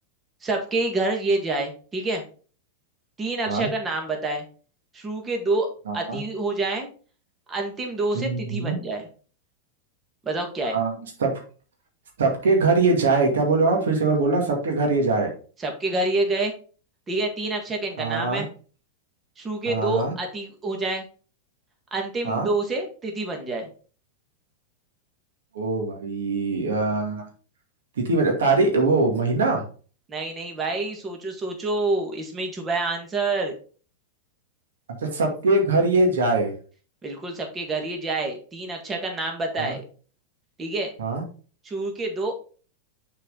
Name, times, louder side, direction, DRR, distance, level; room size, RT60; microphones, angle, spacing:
voice 1, 0.4-2.2 3.2-4.4 4.9-5.7 5.9-6.9 7.5-9.1 10.2-10.8 15.6-16.5 17.1-18.5 19.4-21.1 21.9-23.7 30.1-33.5 37.0-39.8 40.6-40.9 41.6-42.3, right 2 dB, 20° right, 3 dB, 1.7 m, -27 dB
voice 2, 5.9-6.2 8.1-8.8 10.7-10.9 11.2-11.3 12.2-15.3 18.0-18.4 19.7-20.1 22.2-22.5 25.5-27.2 28.0-29.6 35.0-36.5 39.6-39.7 41.0-41.2, right 3 dB, 85° right, 2 dB, 2.1 m, -22 dB
6.4 x 4.6 x 3.8 m, 0.39 s
hypercardioid pair, 115°, 0 cm